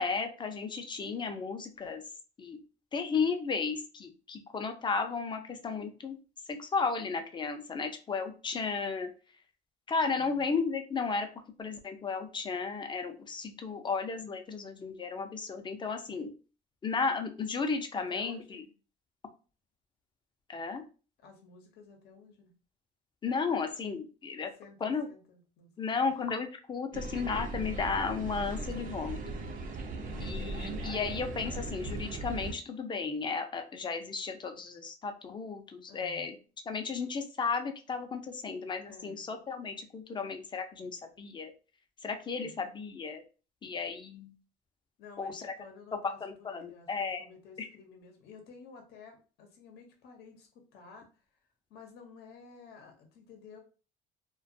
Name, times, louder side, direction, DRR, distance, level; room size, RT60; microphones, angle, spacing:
voice 1, 0.0-2.0 2.4-2.6 2.9-6.2 6.5-9.1 9.9-11.3 11.6-16.3 16.8-18.6 20.5-20.8 23.2-24.5 24.8-25.1 25.8-29.2 30.2-36.4 36.7-41.5 42.0-43.2 43.6-44.3 45.2-45.5 45.9-47.3 47.6-47.7, left 5 dB, 25° left, 6 dB, 0.4 m, -34 dB
voice 2, 10.1-10.4 17.9-18.7 21.2-22.5 24.6-26.1 29.9-30.3 35.9-36.3 38.8-39.3 42.3-42.6 45.0-51.1 51.7-53.6, left 4 dB, 70° left, 3 dB, 0.7 m, -53 dB
sound 1, 26.9-32.5, right 2 dB, 55° right, 0.5 m, -38 dB
2.3 x 2.2 x 2.6 m, 0.35 s
cardioid pair, 110°, 17 cm